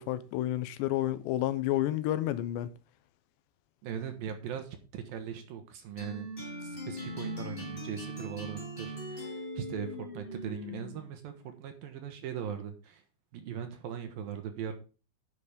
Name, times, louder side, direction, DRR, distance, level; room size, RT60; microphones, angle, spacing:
voice 1, 0.0-2.7, left 13 dB, 85° left, 3.0 m, -30 dB
voice 2, 3.8-6.3 6.6-13.0 13.3-14.7, right 8 dB, 70° right, 2.6 m, -40 dB
sound 1, 6.0-11.1, equal, 20° left, 1.6 m, -40 dB
10.0 x 6.0 x 5.1 m
omnidirectional pair, 4.9 m